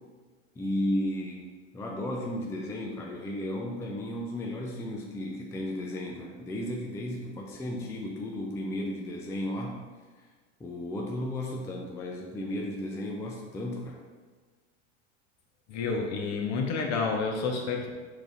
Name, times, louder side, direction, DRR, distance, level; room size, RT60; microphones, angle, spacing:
voice 1, 0.6-1.5 1.7-9.9 10.6-14.0, left 1 dB, 10° left, -1 dB, 0.4 m, -34 dB
voice 2, 15.7-17.9, left 4 dB, 45° left, 2 dB, 0.9 m, -29 dB
4.7 x 2.7 x 3.9 m, 1.4 s
hypercardioid pair, 95°, 37 cm